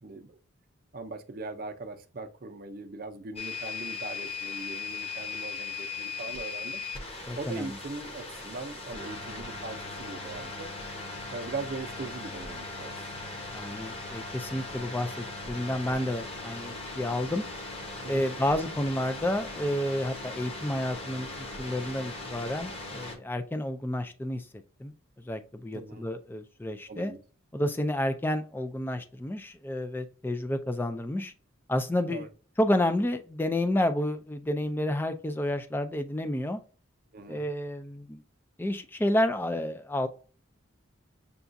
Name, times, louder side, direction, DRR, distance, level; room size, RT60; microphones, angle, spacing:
voice 1, 0.0-0.4 0.9-6.8 7.4-10.7 11.3-13.1 18.0-18.3 25.7-26.1 26.9-27.2 32.1-32.3 37.1-37.5, right 3 dB, 45° right, 0.6 m, -40 dB
sound 1, 3.4-23.2, left 3 dB, 30° left, 0.9 m, -39 dB
voice 2, 7.3-7.7 13.5-17.4 18.1-24.5 24.8-24.9 25.2-27.1 27.5-31.3 31.7-32.3 32.6-36.6 37.3-38.2 38.6-40.1, left 1 dB, 10° left, 0.3 m, -30 dB
6.9 x 2.3 x 2.6 m
head